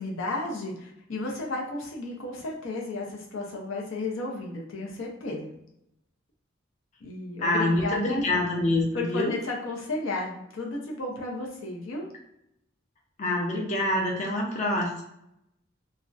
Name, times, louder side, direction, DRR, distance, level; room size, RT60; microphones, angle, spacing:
voice 1, 0.0-5.5 7.0-8.2 8.9-12.1, left 2 dB, 90° left, -1 dB, 0.6 m, -33 dB
voice 2, 7.4-9.3 13.2-15.0, left 1 dB, 35° left, -1 dB, 0.4 m, -26 dB
2.4 x 2.0 x 2.5 m, 0.79 s
head